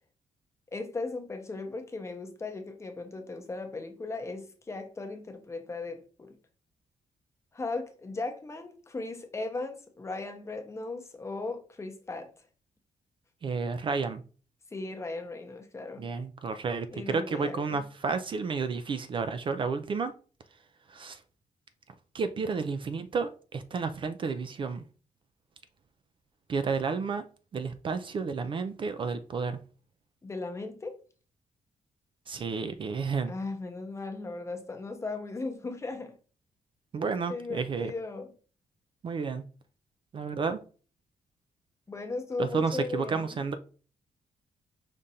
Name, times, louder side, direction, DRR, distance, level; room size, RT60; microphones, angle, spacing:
voice 1, 0.7-6.4 7.5-12.3 14.7-16.0 16.9-17.8 30.2-31.0 33.2-36.2 37.3-38.3 41.9-43.4, left 3 dB, 20° left, 0.8 m, -37 dB
voice 2, 13.4-14.2 16.0-20.1 20.9-21.2 22.1-24.8 26.5-27.2 27.5-29.6 32.3-33.3 36.9-37.9 39.0-39.4 40.1-40.6 42.4-43.6, right 5 dB, 40° right, 0.4 m, -31 dB
5.2 x 2.4 x 4.1 m
wide cardioid pair, 150°, 14 cm